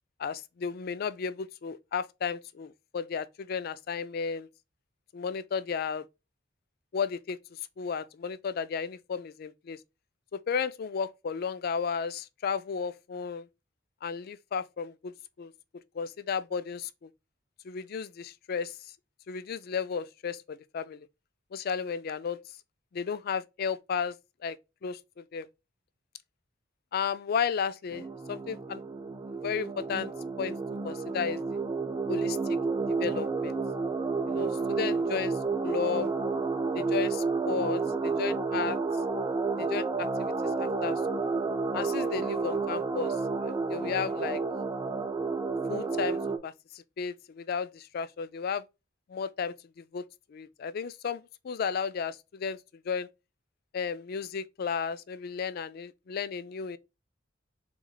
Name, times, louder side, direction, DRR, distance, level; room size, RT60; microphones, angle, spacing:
voice 1, 0.2-4.5 5.1-6.0 6.9-9.8 10.3-13.5 14.0-15.1 15.4-15.5 15.9-17.1 17.6-18.8 19.3-21.1 21.5-22.4 22.9-24.2 24.4-24.6 24.8-25.5 26.9-28.8 29.4-30.1 30.4-30.5 30.8-31.6 32.1-32.4 33.0-33.6 34.3-35.4 35.6-36.1 36.7-38.8 39.6-40.3 40.6-41.3 41.7-43.2 43.4-44.4 45.7-48.6 49.1-50.0 50.3-52.6 52.8-53.1 53.7-56.8, left 6 dB, 50° left, 0.3 m, -34 dB
sound 1, 27.9-46.4, right 4 dB, 20° right, 0.4 m, -30 dB
3.4 x 3.1 x 3.8 m
head